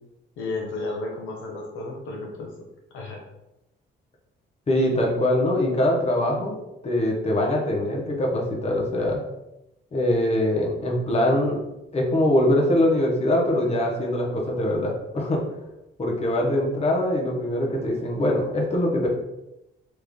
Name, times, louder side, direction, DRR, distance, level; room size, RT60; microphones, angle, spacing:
voice 1, 0.4-2.5 2.9-3.2, left 2 dB, 85° left, -1 dB, 0.8 m, -32 dB
voice 2, 4.7-6.6 6.8-9.2 9.9-11.6 11.9-15.4 16.0-19.1, left 1 dB, 30° left, -1 dB, 0.9 m, -23 dB
3.2 x 2.4 x 3.5 m, 0.91 s
cardioid pair, 90°, 20 cm